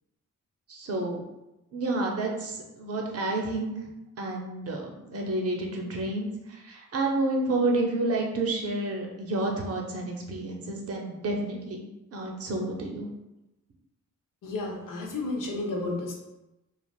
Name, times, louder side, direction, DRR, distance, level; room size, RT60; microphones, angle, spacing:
voice 1, 0.7-1.2 1.7-3.7 4.2-13.1, right 2 dB, 50° right, 0 dB, 0.6 m, -30 dB
voice 2, 14.4-16.2, left 2 dB, 80° left, 0 dB, 0.7 m, -32 dB
3.3 x 2.4 x 2.3 m, 0.96 s
wide cardioid pair, 125°, 32 cm